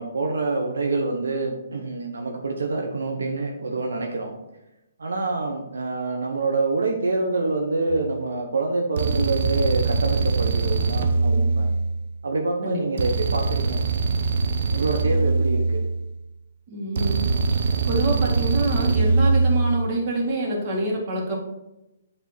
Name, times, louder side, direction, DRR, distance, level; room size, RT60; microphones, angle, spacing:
voice 1, 0.0-4.3 5.0-11.7 12.2-13.8 14.7-15.8, right 3 dB, 85° right, 2 dB, 0.9 m, -26 dB
sound 1, 7.9-8.2 9.0-12.2 13.0-16.2 17.0-19.9, right 4 dB, 60° right, 0.7 m, -22 dB
voice 2, 16.7-17.3 17.9-21.4, right 1 dB, 40° right, -2 dB, 2.1 m, -26 dB
8.7 x 3.6 x 4.3 m, 0.95 s
hypercardioid pair, 140°, 0 cm